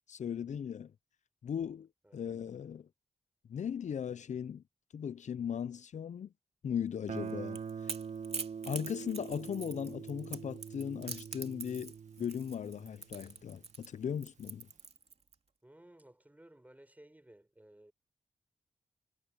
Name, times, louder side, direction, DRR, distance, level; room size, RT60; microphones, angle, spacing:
voice 1, 0.1-0.9 1.4-2.9 3.5-4.6 4.9-6.3 6.6-7.6 8.7-11.9 12.2-14.7, left 8 dB, 70° left, 0.5 m, -38 dB
Guitar, 7.1-13.8, right 6 dB, 75° right, 1.7 m, -44 dB
Crackle / Crack, 7.2-15.3, right 4 dB, 55° right, 2.5 m, -44 dB
voice 2, 15.6-17.9, right 1 dB, 10° right, 5.2 m, -58 dB
cardioid pair, 65°, 13 cm